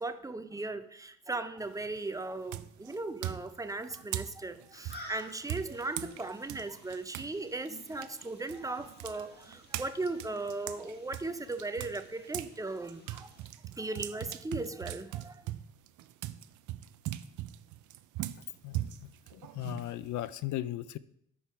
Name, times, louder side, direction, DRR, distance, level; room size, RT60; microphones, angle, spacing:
voice 1, 0.0-13.3 13.8-15.4, right 2 dB, 10° right, 10 dB, 0.5 m, -37 dB
sound 1, 1.6-2.0 2.5-7.3 7.7-12.5 12.9-20.3, right 14 dB, 75° right, 0.5 m, -40 dB
sound 2, 4.7-13.5, left 1 dB, 35° left, 1.6 m, -54 dB
voice 2, 18.6-21.0, left 14 dB, 75° left, 17 dB, 0.5 m, -37 dB
6.9 x 4.7 x 4.6 m, 0.73 s
cardioid pair, 90°, 30 cm